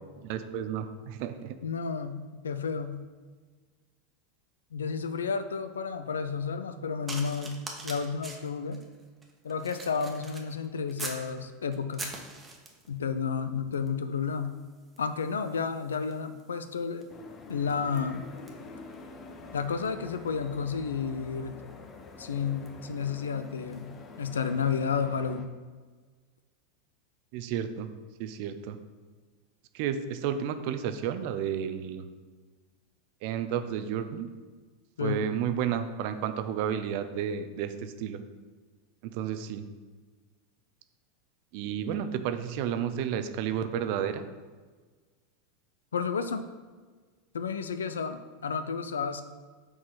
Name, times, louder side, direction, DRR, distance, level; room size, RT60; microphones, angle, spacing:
voice 1, 0.2-1.6 27.3-27.9 28.2-28.8 29.7-32.1 33.2-34.3 35.0-38.2 39.0-39.7 41.5-44.2, right 9 dB, 55° right, 10 dB, 0.6 m, -32 dB
voice 2, 1.6-3.0 4.7-7.5 7.8-8.8 9.4-12.1 12.9-14.6 15.0-17.1 17.5-18.2 19.5-21.5 22.2-25.5 35.0-35.3 45.9-46.4 47.3-49.2, left 6 dB, 80° left, 11 dB, 0.5 m, -31 dB
sound 1, 7.1-11.3 11.7-13.0 13.7-14.0 14.3-23.9 24.6-24.8, right 3 dB, 20° right, 1.3 m, -46 dB
sound 2, 17.1-25.5, left 4 dB, 30° left, 0.8 m, -46 dB
6.2 x 4.0 x 6.2 m, 1.4 s
hypercardioid pair, 90°, 0 cm